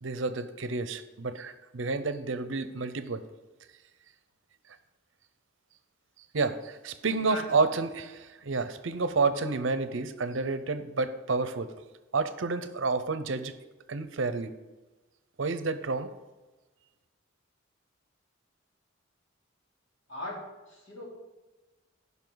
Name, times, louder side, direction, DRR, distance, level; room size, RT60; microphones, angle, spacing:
voice 1, 0.0-3.2 6.3-11.7 12.1-13.5 13.9-14.6 15.4-16.1, right 3 dB, 70° right, 12 dB, 0.7 m, -30 dB
voice 2, 7.2-7.7 20.1-21.1, left 1 dB, 70° left, -4 dB, 3.2 m, -40 dB
15.0 x 5.6 x 4.0 m, 1.2 s
head